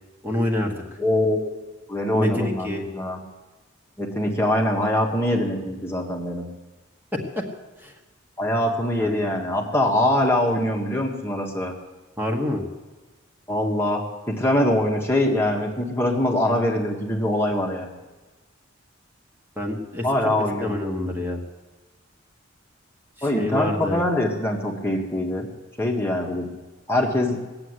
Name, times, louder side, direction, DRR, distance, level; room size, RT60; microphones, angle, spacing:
voice 1, 0.2-0.7 2.1-2.8 7.3-7.4 7.8-7.9 9.0-9.2 12.2-12.6 19.6-20.3 20.6-21.4 23.2-24.0, left 1 dB, 10° right, 1 dB, 1.7 m, -27 dB
voice 2, 1.0-1.5 1.9-3.2 4.0-6.5 8.4-11.7 13.5-17.9 20.0-20.7 23.2-25.5 25.8-26.5 26.9-27.4, left 1 dB, 10° left, 0 dB, 1.6 m, -23 dB
18.5 x 7.9 x 9.7 m, 1.2 s
head